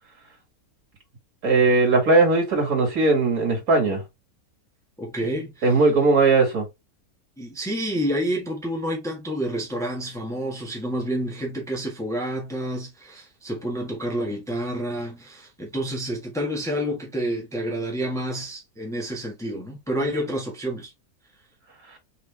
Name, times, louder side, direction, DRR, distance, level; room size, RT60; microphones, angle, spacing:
voice 1, 1.4-4.0 5.6-6.6, right 3 dB, 75° right, 2.4 m, -19 dB
voice 2, 5.0-5.8 7.4-20.9, equal, ahead, 1.3 m, -29 dB
4.2 x 3.5 x 3.2 m
omnidirectional pair, 1.6 m